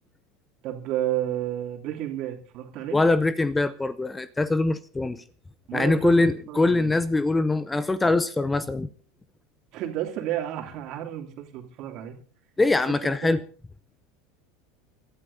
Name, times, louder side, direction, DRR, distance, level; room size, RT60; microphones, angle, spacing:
voice 1, 0.6-3.0 5.7-6.9 9.7-12.2 12.9-13.0 13.2-13.4, right 12 dB, 50° right, 3 dB, 2.7 m, -31 dB
voice 2, 2.9-5.2 5.7-8.9 12.6-13.4, left 2 dB, 15° left, 16 dB, 0.7 m, -23 dB
30.0 x 13.0 x 2.7 m, 0.43 s
figure-of-eight pair, 80°, 0 cm